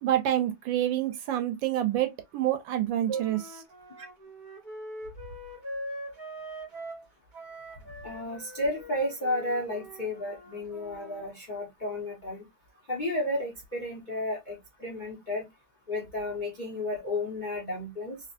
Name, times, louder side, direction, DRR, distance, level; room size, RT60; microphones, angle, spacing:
voice 1, 0.0-3.4, right 12 dB, 75° right, 1.2 m, -27 dB
Wind instrument woodwind instrument, 3.1-7.1 7.3-11.3, equal, 35° right, 0.8 m, -43 dB
voice 2, 8.0-12.4 12.9-15.4 15.9-18.2, left 1 dB, 85° left, 0.4 m, -32 dB
3.3 x 2.9 x 2.4 m
omnidirectional pair, 2.4 m